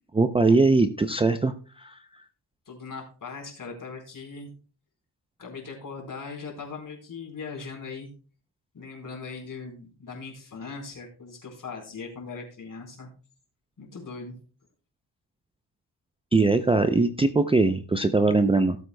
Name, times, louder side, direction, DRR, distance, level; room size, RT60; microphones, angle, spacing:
voice 1, 0.1-2.0 16.3-18.8, right 3 dB, 15° right, 7 dB, 0.5 m, -21 dB
voice 2, 2.7-4.5 5.4-8.1 8.7-13.1 13.8-14.4, left 4 dB, 50° left, 1 dB, 4.3 m, -39 dB
17.5 x 7.9 x 2.2 m, 0.38 s
wide cardioid pair, 130°, 42 cm